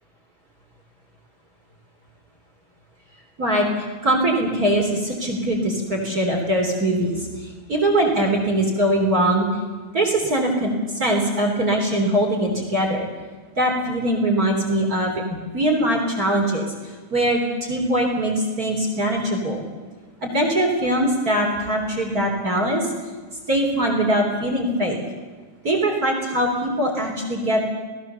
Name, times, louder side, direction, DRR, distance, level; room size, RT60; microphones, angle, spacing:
voice 1, 4.0-9.5 9.9-13.1 13.6-15.2 15.5-16.7 17.1-19.6 20.2-22.9 23.5-25.0 25.6-27.7, right 1 dB, 30° right, 1 dB, 4.0 m, -22 dB
29.5 x 18.5 x 6.9 m, 1.4 s
omnidirectional pair, 3.3 m